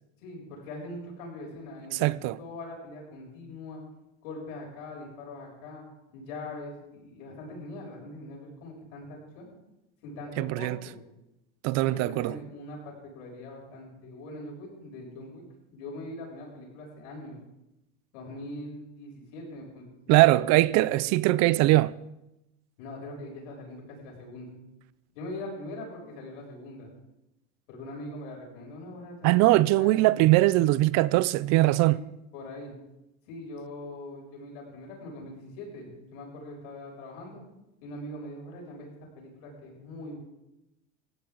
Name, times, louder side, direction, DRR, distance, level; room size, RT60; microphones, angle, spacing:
voice 1, 0.2-2.1 2.4-3.8 4.2-5.8 6.1-9.5 10.0-11.0 11.8-15.4 15.7-17.4 18.1-19.9 20.2-21.0 22.8-24.6 25.1-26.9 27.7-30.1 31.8-32.0 32.3-32.7 33.3-37.4 37.8-40.2, left 1 dB, 80° left, 7.4 m, -42 dB
voice 2, 1.9-2.4 10.4-10.8 11.6-12.3 20.1-21.9 29.2-32.0, right 18 dB, 50° right, 0.5 m, -21 dB
19.0 x 15.0 x 3.9 m
supercardioid pair, 140°, 37 cm